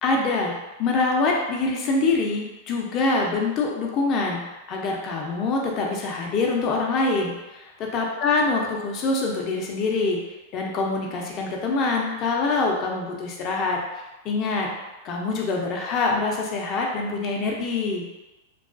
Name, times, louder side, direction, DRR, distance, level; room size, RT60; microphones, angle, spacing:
voice 1, 0.0-0.5 0.8-10.2 10.5-13.8 14.2-14.7 15.0-18.0, left 3 dB, 40° left, -1 dB, 0.5 m, -25 dB
2.3 x 2.1 x 2.4 m, 1.1 s
hypercardioid pair, 115°, 0 cm